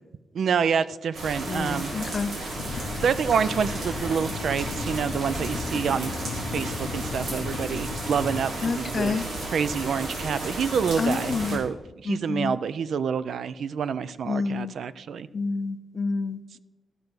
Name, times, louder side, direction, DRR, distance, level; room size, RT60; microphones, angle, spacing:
voice 1, 0.3-1.9 2.9-6.1 6.5-9.2 9.5-15.3, right 6 dB, 60° right, 15 dB, 0.3 m, -27 dB
sound 1, 1.1-11.6, right 1 dB, 90° right, 3.0 m, -33 dB
voice 2, 1.5-2.3 8.6-9.2 11.0-11.6 12.1-12.5 14.2-14.7 15.3-16.6, left 4 dB, 35° left, 12 dB, 0.5 m, -28 dB
sound 2, 2.5-8.4, left 5 dB, 75° left, 0.7 m, -36 dB
13.5 x 5.3 x 6.0 m, 1.1 s
wide cardioid pair, 175°, 0 cm